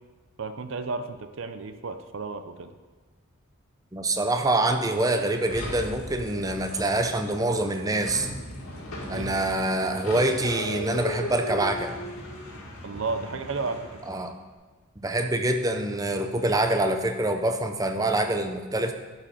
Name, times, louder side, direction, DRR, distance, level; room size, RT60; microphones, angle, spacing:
voice 1, 0.4-2.7 9.1-9.5 12.8-14.0, right 4 dB, 60° right, 9 dB, 0.5 m, -33 dB
voice 2, 3.9-8.3 9.1-12.0 14.1-14.3 15.0-18.9, right 2 dB, 15° right, 6 dB, 0.6 m, -25 dB
sound 1, 5.5-14.2, left 1 dB, 85° left, 2.1 m, -37 dB
11.0 x 5.0 x 5.7 m, 1.3 s
head